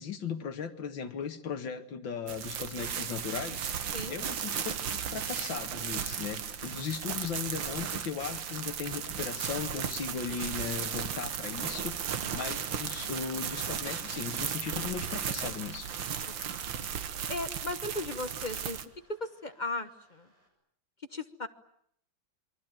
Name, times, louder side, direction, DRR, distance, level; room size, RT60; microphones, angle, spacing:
voice 1, 0.0-4.6 4.9-11.9 12.3-15.9, left 6 dB, 75° left, 9 dB, 2.4 m, -37 dB
sound 1, 2.3-18.8, right 8 dB, 75° right, 2.0 m, -35 dB
sound 2, 13.4-20.5, right 1 dB, 45° right, 7.6 m, -60 dB
voice 2, 17.3-18.8 19.1-20.3 21.1-21.5, left 2 dB, 30° left, 9 dB, 1.0 m, -36 dB
28.0 x 23.0 x 9.2 m, 0.71 s
omnidirectional pair, 2.1 m